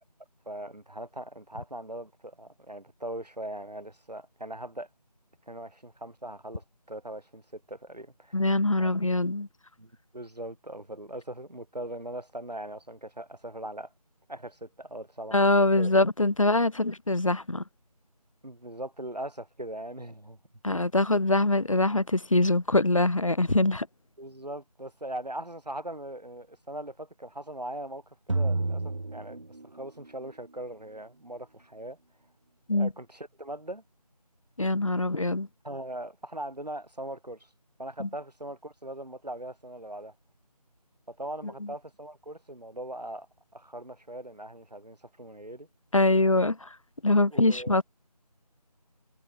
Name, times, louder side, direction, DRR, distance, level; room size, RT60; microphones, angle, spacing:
voice 1, 0.5-4.9 5.5-8.4 8.8-8.9 9.8-13.9 14.3-15.4 15.7-15.9 18.4-20.4 24.2-32.0 32.7-33.8 35.6-37.5 37.8-40.1 41.1-43.3 43.5-45.7 47.3-47.8, right 1 dB, 75° right, 6.0 m, -40 dB
voice 2, 8.3-9.5 15.3-17.6 20.6-23.9 32.7-32.9 34.6-35.5 38.0-38.1 45.9-46.7 47.0-47.8, left 2 dB, 50° left, 3.0 m, -23 dB
sound 1, 28.3-30.1, right 2 dB, 50° right, 0.6 m, -30 dB
figure-of-eight pair, 165°, 21 cm